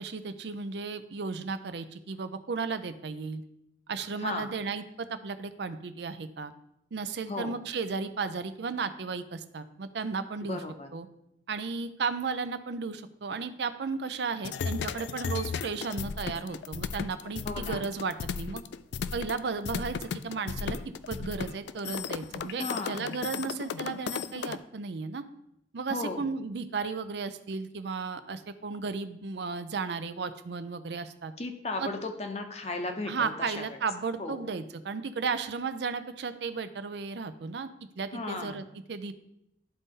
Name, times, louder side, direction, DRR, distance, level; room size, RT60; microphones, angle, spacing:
voice 1, 0.0-3.4 3.9-6.5 6.9-10.6 10.9-11.1 11.5-18.6 19.1-25.2 25.7-31.3 31.8-31.9 33.1-37.7 38.0-39.1, right 4 dB, 70° right, 11 dB, 0.5 m, -34 dB
voice 2, 10.4-10.9 17.4-17.8 22.6-23.0 25.9-26.3 31.4-33.8 34.2-34.5 38.1-38.6, left 2 dB, 40° left, 5 dB, 0.8 m, -35 dB
sound 1, 14.4-24.6, left 6 dB, 75° left, 0.3 m, -35 dB
11.0 x 4.0 x 3.7 m, 0.81 s
head